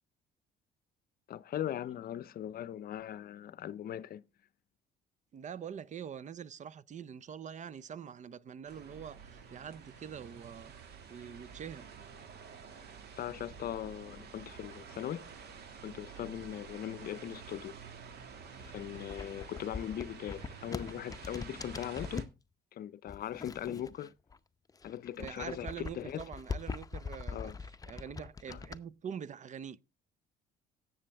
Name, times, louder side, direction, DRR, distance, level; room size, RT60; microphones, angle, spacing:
voice 1, 1.3-4.2 13.2-15.3 15.8-17.8 18.7-22.3 22.7-24.1 24.8-26.2 27.3-27.6 28.5-28.6, left 11 dB, 55° left, 0.6 m, -40 dB
voice 2, 5.3-11.9 25.2-29.8, right 8 dB, 40° right, 0.6 m, -45 dB
sound 1, 8.7-22.2, right 6 dB, 60° right, 2.1 m, -50 dB
sound 2, 18.5-22.4 23.1-24.4 24.7-28.8, left 4 dB, 20° left, 0.7 m, -43 dB
17.0 x 7.1 x 3.4 m
supercardioid pair, 80°, 19 cm